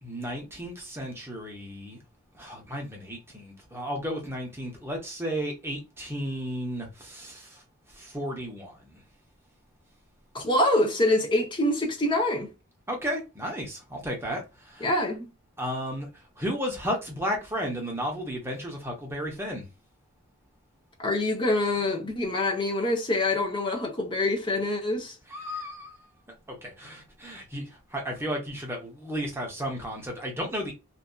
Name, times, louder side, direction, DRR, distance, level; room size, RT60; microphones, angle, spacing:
voice 1, 0.0-2.0 2.3-7.6 8.0-9.0 12.9-15.0 15.6-16.1 16.4-19.7 25.3-26.0 26.5-30.7, equal, 10° right, 0.7 m, -33 dB
voice 2, 10.3-12.5 14.8-15.3 21.0-25.1, left 1 dB, 20° left, 0.6 m, -25 dB
2.7 x 2.3 x 2.2 m
head